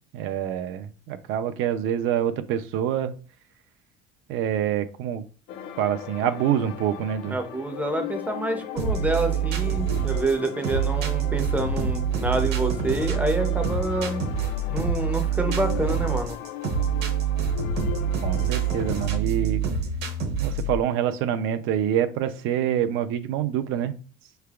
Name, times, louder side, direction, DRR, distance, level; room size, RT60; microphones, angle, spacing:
voice 1, 0.1-3.1 4.3-5.2 5.8-7.4 18.2-19.6 20.4-23.9, right 10 dB, 75° right, 9 dB, 0.5 m, -26 dB
sound 1, 5.5-19.2, left 10 dB, 50° left, 0.4 m, -38 dB
voice 2, 7.3-14.3 14.7-16.4, right 2 dB, 10° right, 6 dB, 0.5 m, -28 dB
sound 2, 8.8-20.8, right 7 dB, 50° right, 0.8 m, -26 dB
5.8 x 3.3 x 2.3 m, 0.36 s
cardioid pair, 175°, 21 cm